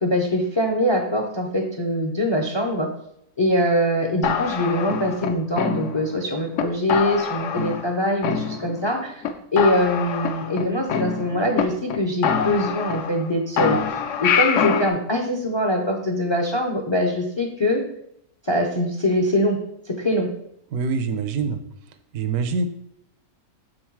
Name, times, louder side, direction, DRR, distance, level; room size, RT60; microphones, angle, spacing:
voice 1, 0.0-2.9 3.4-9.2 9.5-17.8 18.4-19.6 19.9-20.3, left 1 dB, 40° left, 2 dB, 0.4 m, -23 dB
sound 1, 4.2-6.2 6.6-6.7 6.9-7.9 8.2-8.9 9.2-9.3 9.6-11.6 11.9-12.0 12.2-13.3 13.6-14.9, left 7 dB, 65° left, 0.8 m, -25 dB
voice 2, 20.7-21.6 22.1-22.6, right 5 dB, 70° right, 9 dB, 1.0 m, -24 dB
6.5 x 3.9 x 4.6 m, 0.73 s
omnidirectional pair, 1.6 m